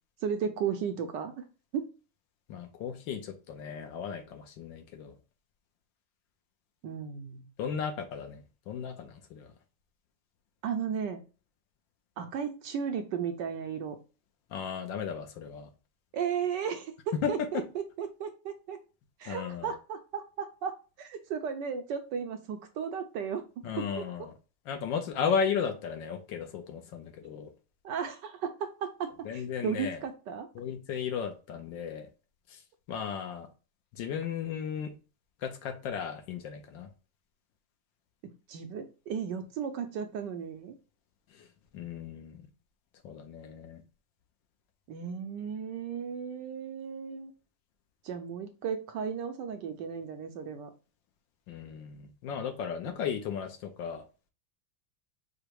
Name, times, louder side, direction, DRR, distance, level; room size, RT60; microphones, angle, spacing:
voice 1, 0.2-1.4 1.7-1.9 6.8-7.4 10.6-11.2 12.2-14.0 16.1-18.8 19.2-23.9 24.2-24.3 27.8-30.5 38.5-40.8 44.9-47.3 48.0-50.7, right 7 dB, 70° right, 6 dB, 1.1 m, -35 dB
voice 2, 2.5-5.2 7.6-9.5 14.5-15.7 17.1-17.3 19.3-19.7 23.6-24.3 24.7-27.5 29.2-30.0 30.5-32.1 32.5-32.6 32.9-33.5 33.9-34.9 35.4-36.9 41.3-41.5 41.7-42.5 43.0-43.8 51.5-54.0, left 7 dB, 70° left, 6 dB, 1.3 m, -35 dB
4.9 x 2.1 x 4.6 m, 0.33 s
omnidirectional pair, 2.2 m